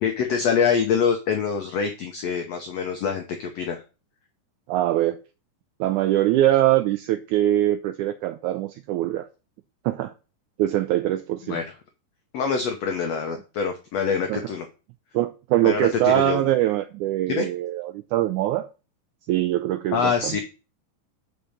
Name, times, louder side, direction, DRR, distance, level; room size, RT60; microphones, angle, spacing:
voice 1, 0.0-3.8 11.5-11.7 12.3-14.7 15.6-16.4 17.3-17.5 19.9-20.4, left 6 dB, 80° left, 1.4 m, -25 dB
voice 2, 4.7-5.2 5.8-9.3 9.9-10.1 10.6-11.6 14.3-14.4 15.1-18.7 19.3-20.4, right 13 dB, 85° right, 1.7 m, -23 dB
5.8 x 5.3 x 6.3 m
omnidirectional pair, 4.0 m